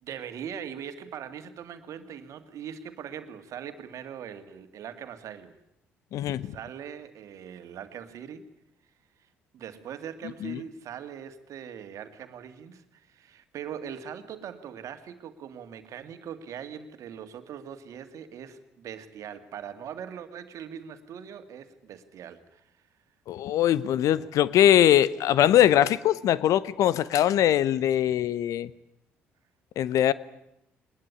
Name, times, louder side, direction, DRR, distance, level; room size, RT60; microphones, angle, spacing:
voice 1, 0.0-5.6 6.4-8.5 9.2-22.8, right 8 dB, 60° right, 9 dB, 2.2 m, -41 dB
voice 2, 6.1-6.5 10.4-10.6 23.3-28.7 29.8-30.1, left 11 dB, 60° left, 19 dB, 0.9 m, -22 dB
21.5 x 20.5 x 9.9 m, 0.81 s
hypercardioid pair, 50°, 6 cm